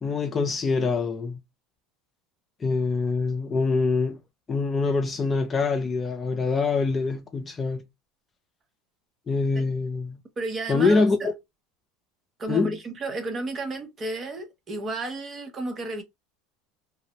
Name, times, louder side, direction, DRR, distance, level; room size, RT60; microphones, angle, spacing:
voice 1, 0.0-1.4 2.6-4.2 4.5-7.8 9.3-10.2 10.7-11.3 12.5-12.8, left 4 dB, 25° left, 0.5 m, -24 dB
voice 2, 10.4-11.3 12.4-16.0, right 2 dB, 30° right, 0.7 m, -32 dB
2.5 x 2.0 x 2.8 m
supercardioid pair, 120°, 0 cm